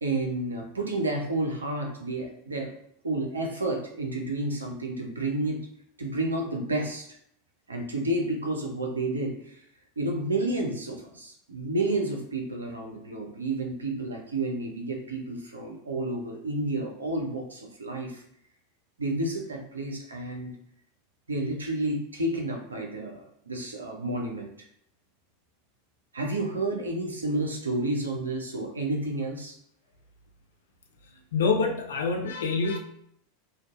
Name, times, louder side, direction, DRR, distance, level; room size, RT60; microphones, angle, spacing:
voice 1, 0.0-2.7 3.0-5.6 6.0-7.1 7.7-9.6 10.0-18.2 19.0-20.5 21.3-24.7 26.1-29.6, right 2 dB, 80° right, 1 dB, 0.5 m, -30 dB
voice 2, 31.3-32.8, left 4 dB, 65° left, 3 dB, 0.4 m, -26 dB
2.6 x 2.2 x 2.4 m, 0.70 s
figure-of-eight pair, 85°, 0 cm